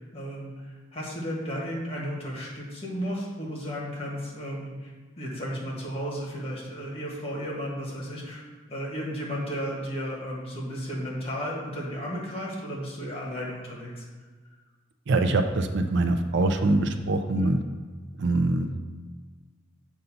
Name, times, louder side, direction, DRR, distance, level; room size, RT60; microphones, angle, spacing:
voice 1, 0.1-8.4 8.7-14.0 17.3-17.5, equal, 30° left, -4 dB, 1.5 m, -34 dB
voice 2, 15.1-17.6 18.2-18.8, right 2 dB, 60° right, 7 dB, 0.4 m, -24 dB
7.8 x 2.7 x 5.5 m, 1.4 s
head